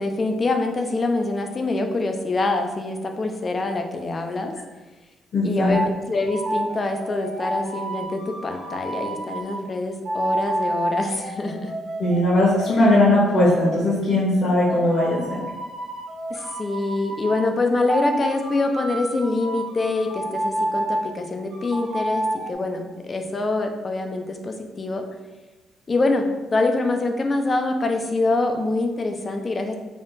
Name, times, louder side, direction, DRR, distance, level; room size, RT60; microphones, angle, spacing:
voice 1, 0.0-4.5 5.4-11.7 16.3-25.0 25.9-26.2 26.5-29.7, left 2 dB, 35° left, 5 dB, 0.5 m, -25 dB
voice 2, 5.3-5.7 12.0-15.4, left 1 dB, 55° left, -8 dB, 1.1 m, -19 dB
sound 1, 5.7-5.9 6.3-9.6 10.0-13.8 14.4-17.4 17.9-21.1 21.5-22.5, right 1 dB, 60° right, 0.7 m, -30 dB
3.6 x 2.4 x 4.0 m, 1.2 s
cardioid pair, 90°, 0 cm